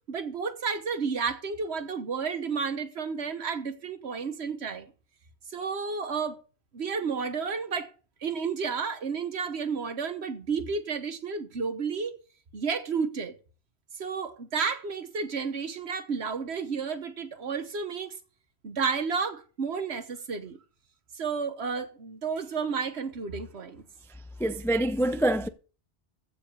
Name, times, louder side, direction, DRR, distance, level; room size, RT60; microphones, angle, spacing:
voice 1, 0.1-4.9 5.5-6.4 6.7-7.9 8.2-12.2 12.5-13.3 14.0-18.2 18.6-20.6 21.1-23.8, right 5 dB, 70° right, 1.5 m, -31 dB
voice 2, 24.4-25.5, right 1 dB, 5° left, 0.3 m, -25 dB
14.5 x 4.9 x 6.8 m
omnidirectional pair, 1.2 m